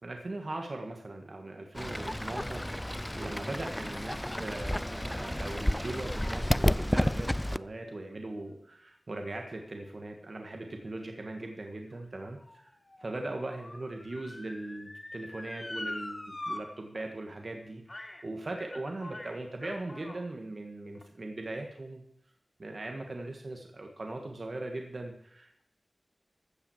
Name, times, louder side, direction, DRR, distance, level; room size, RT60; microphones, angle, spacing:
voice 1, 0.0-12.7 13.0-22.0 22.6-25.7, right 2 dB, 60° right, 3 dB, 1.8 m, -40 dB
Fowl / Bird, 1.7-7.6, left 1 dB, 10° left, 0.4 m, -31 dB
Motor vehicle (road) / Siren, 11.4-16.6 17.0-17.1 17.9-18.2 18.6-20.2 21.0-21.1, left 1 dB, 35° left, 1.7 m, -43 dB
15.0 x 5.9 x 7.4 m, 0.72 s
wide cardioid pair, 50°, 0 cm